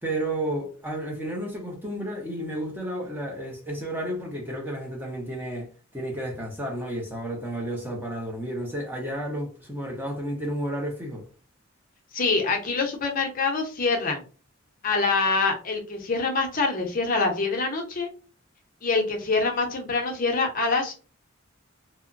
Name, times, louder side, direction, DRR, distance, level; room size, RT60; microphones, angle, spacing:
voice 1, 0.0-11.2, right 1 dB, 10° right, 0.6 m, -32 dB
voice 2, 12.1-14.2 14.8-18.1 18.8-20.9, left 3 dB, 40° left, 0.6 m, -25 dB
2.8 x 2.1 x 2.5 m
head